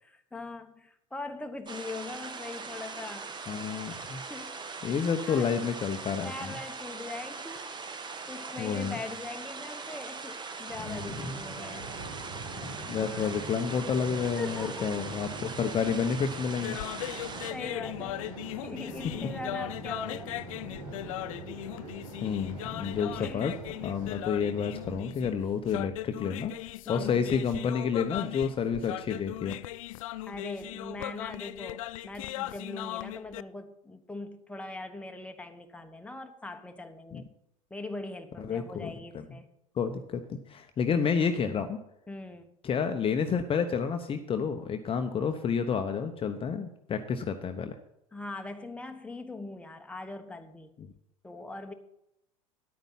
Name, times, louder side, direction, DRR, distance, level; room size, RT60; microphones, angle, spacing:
voice 1, 0.0-3.3 4.3-4.7 5.3-5.7 6.2-12.0 12.9-13.4 14.4-15.0 17.1-18.3 18.6-20.4 21.5-21.6 23.1-23.5 26.8-27.2 30.3-37.2 37.7-39.5 42.1-42.5 48.1-50.7 51.2-51.7, left 2 dB, 5° left, 6 dB, 1.2 m, -41 dB
sound 1, 1.7-17.5, right 4 dB, 25° right, 1.3 m, -41 dB
voice 2, 3.5-4.2 4.8-6.5 8.6-9.0 10.8-11.5 12.5-16.8 19.2-19.3 22.2-23.5 23.8-26.5 26.9-29.6 37.1-37.2 38.4-38.9 39.8-41.8 42.6-47.8 50.8-50.9, left 6 dB, 30° left, 7 dB, 0.9 m, -30 dB
sound 2, 10.7-25.0, right 2 dB, 70° right, 4.0 m, -44 dB
sound 3, 16.5-33.4, left 16 dB, 70° left, 0.4 m, -38 dB
10.5 x 9.1 x 5.7 m, 0.81 s
hypercardioid pair, 80°, 18 cm